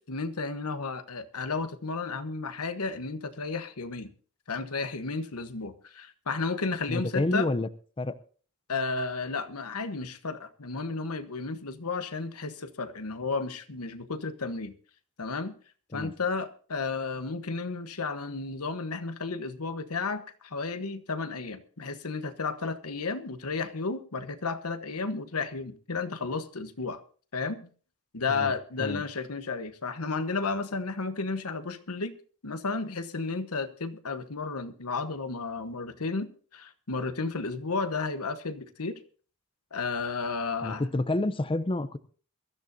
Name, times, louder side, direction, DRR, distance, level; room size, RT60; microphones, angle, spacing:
voice 1, 0.0-4.1 4.5-7.5 8.7-14.8 15.2-15.5 15.9-27.0 27.3-27.7 28.1-32.1 32.4-39.0 39.7-40.8, left 4 dB, 80° left, 1.1 m, -33 dB
voice 2, 6.9-7.7 8.0-8.2 15.9-16.1 28.3-28.5 28.8-29.0 40.6-42.0, left 2 dB, 25° left, 0.6 m, -29 dB
22.5 x 13.5 x 2.7 m
head